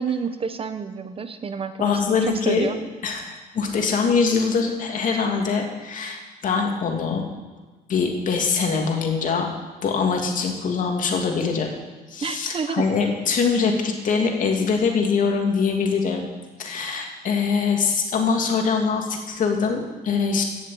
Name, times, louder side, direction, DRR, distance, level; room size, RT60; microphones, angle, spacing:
voice 1, 0.0-2.8 12.2-12.9, right 6 dB, 35° right, 9 dB, 1.0 m, -29 dB
voice 2, 1.8-2.7 3.0-7.3 7.9-9.5 9.8-11.7 12.1-16.3 16.6-20.4, left 5 dB, 50° left, 2 dB, 2.8 m, -23 dB
16.0 x 7.1 x 8.7 m, 1.3 s
cardioid pair, 110°, 17 cm